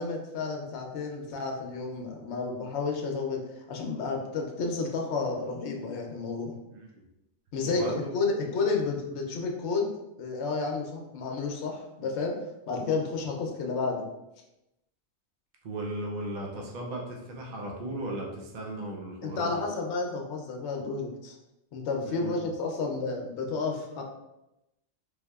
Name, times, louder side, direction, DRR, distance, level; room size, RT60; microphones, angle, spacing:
voice 1, 0.0-6.6 7.5-9.9 10.2-12.3 12.7-14.1 19.2-21.3 21.7-24.0, left 4 dB, 70° left, 1 dB, 0.9 m, -31 dB
voice 2, 6.7-7.0 7.6-8.0 15.6-19.6 22.0-22.5, right 1 dB, 50° right, -1 dB, 0.6 m, -36 dB
3.3 x 2.8 x 2.3 m, 0.91 s
omnidirectional pair, 1.2 m